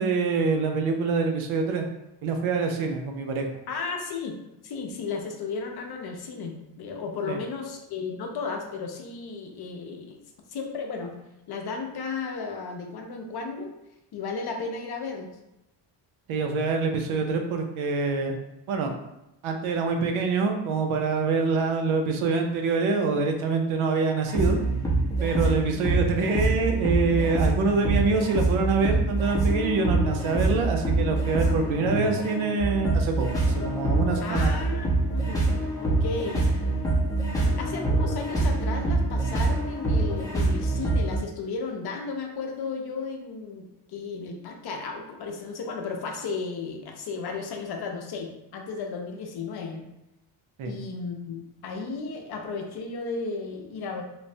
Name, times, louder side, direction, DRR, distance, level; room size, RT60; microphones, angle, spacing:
voice 1, 0.0-1.8 2.2-3.5 7.3-7.4 16.3-18.4 18.7-18.9 19.4-24.6 25.2-34.5 50.6-50.7, right 4 dB, 75° right, 4 dB, 0.6 m, -25 dB
voice 2, 3.7-4.4 4.6-10.2 10.5-11.1 11.5-13.7 14.1-15.4 25.4-25.8 31.5-31.6 34.2-35.4 35.8-36.5 37.4-49.9 50.6-54.0, left 4 dB, 50° left, 3 dB, 0.6 m, -34 dB
sound 1, 24.3-41.2, right 2 dB, 5° left, 0.6 m, -25 dB
3.2 x 2.0 x 2.6 m, 0.88 s
cardioid pair, 100°, 50 cm